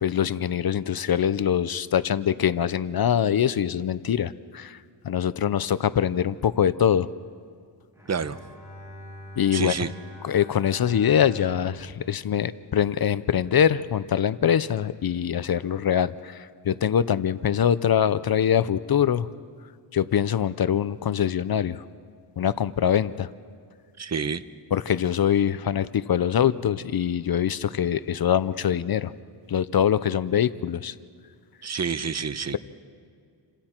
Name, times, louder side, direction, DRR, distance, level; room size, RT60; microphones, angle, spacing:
voice 1, 0.0-4.8 5.0-7.1 9.4-9.7 10.2-19.3 19.9-21.8 22.4-23.3 24.7-29.1 29.5-30.9, left 9 dB, 50° left, 15 dB, 0.6 m, -23 dB
Bowed string instrument, 7.9-13.2, equal, 5° right, 7.2 m, -44 dB
voice 2, 8.1-8.4 9.5-9.9 24.0-24.4 31.6-32.6, right 6 dB, 35° right, 13 dB, 0.8 m, -28 dB
29.0 x 26.0 x 4.5 m, 2.2 s
wide cardioid pair, 105°, 47 cm